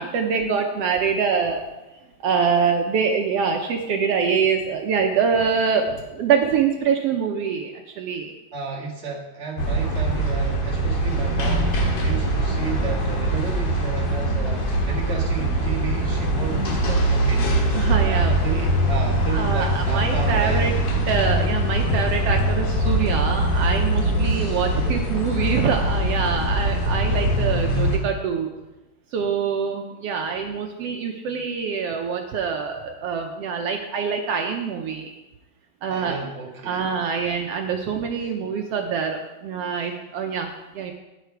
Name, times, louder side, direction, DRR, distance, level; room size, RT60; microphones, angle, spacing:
voice 1, 0.0-1.6 2.2-8.3 16.4-16.8 17.7-18.6 19.3-20.7 21.1-28.5 29.1-35.1 35.8-36.2 36.6-40.9, right 6 dB, 75° right, 3 dB, 1.5 m, -25 dB
voice 2, 8.5-17.5 18.0-20.6 24.1-25.2 35.8-37.0 39.8-39.9, right 5 dB, 30° right, -3 dB, 1.4 m, -33 dB
sound 1, 9.6-28.0, right 1 dB, 55° left, 2.3 m, -22 dB
9.7 x 8.2 x 4.6 m, 1.1 s
omnidirectional pair, 3.3 m